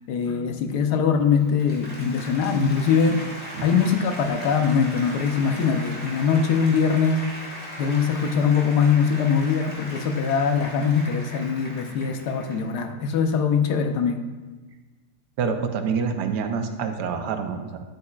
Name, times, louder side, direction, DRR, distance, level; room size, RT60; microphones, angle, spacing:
voice 1, 0.1-3.2 3.6-7.3 7.8-14.2, left 6 dB, 70° left, 6 dB, 1.1 m, -22 dB
Applause, 1.2-12.8, equal, 35° left, 2.0 m, -38 dB
voice 2, 15.4-17.8, right 6 dB, 70° right, 6 dB, 1.2 m, -27 dB
9.8 x 8.3 x 2.3 m, 1.3 s
omnidirectional pair, 2.0 m